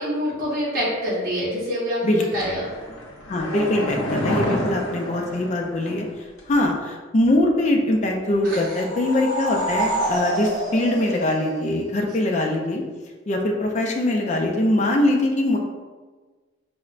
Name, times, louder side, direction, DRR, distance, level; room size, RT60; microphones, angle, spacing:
voice 1, 0.0-2.7 8.4-8.8, equal, 50° right, -8 dB, 0.7 m, -26 dB
sound 1, 2.4-6.1 6.4-6.5, equal, 85° left, 0.6 m, -29 dB
voice 2, 3.3-6.0 6.5-12.8 13.3-15.6, left 1 dB, 35° left, 1 dB, 0.3 m, -22 dB
sound 2, 8.5-12.1, right 1 dB, 20° right, 1.0 m, -27 dB
4.2 x 2.1 x 2.4 m, 1.4 s
head